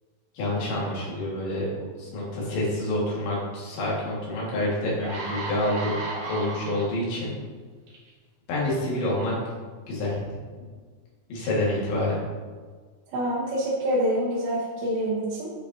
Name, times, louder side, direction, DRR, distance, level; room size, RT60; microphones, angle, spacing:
voice 1, 0.4-1.7 2.0-6.0 6.3-7.4 8.5-9.3 9.9-10.2 11.3-12.2, left 1 dB, 80° left, -5 dB, 4.1 m, -27 dB
sound 1, 4.3-4.4 4.8-7.2 7.9-8.1, right 3 dB, 60° right, 3.0 m, -34 dB
voice 2, 13.1-15.5, equal, 80° right, -6 dB, 3.2 m, -26 dB
10.0 x 5.1 x 2.8 m, 1.5 s
omnidirectional pair, 5.0 m